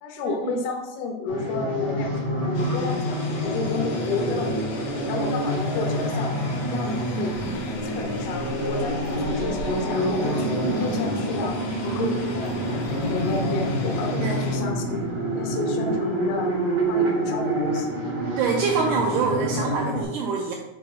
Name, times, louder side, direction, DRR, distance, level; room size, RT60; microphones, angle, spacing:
voice 1, 0.0-4.8 5.1-6.4 6.7-7.4 7.8-15.0 15.3-16.6 16.9-17.9, left 3 dB, 90° left, 3 dB, 2.8 m, -32 dB
sound 1, 1.3-20.0, right 1 dB, 30° right, 1.8 m, -27 dB
sound 2, 2.5-14.6, left 4 dB, 70° left, 1.5 m, -38 dB
sound 3, 7.3-15.0, left 1 dB, 55° left, 3.2 m, -34 dB
voice 2, 14.1-14.4 18.4-20.5, right 5 dB, 85° right, 1 dB, 1.8 m, -25 dB
7.4 x 3.3 x 5.4 m, 0.97 s
omnidirectional pair, 4.2 m